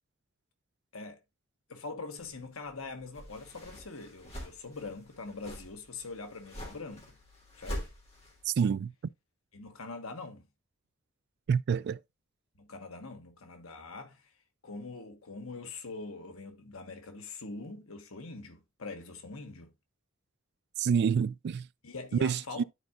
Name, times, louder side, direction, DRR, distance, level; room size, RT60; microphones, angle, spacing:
voice 1, 1.7-7.2 7.5-7.9 9.5-10.4 12.6-14.3 14.6-19.7 21.8-22.6, left 3 dB, 85° left, 1.3 m, -43 dB
sound 1, 2.2-8.5, equal, 30° left, 2.7 m, -45 dB
voice 2, 8.4-8.9 11.5-12.0 20.8-21.7 22.1-22.6, right 6 dB, 50° right, 0.3 m, -27 dB
11.5 x 4.7 x 2.5 m
head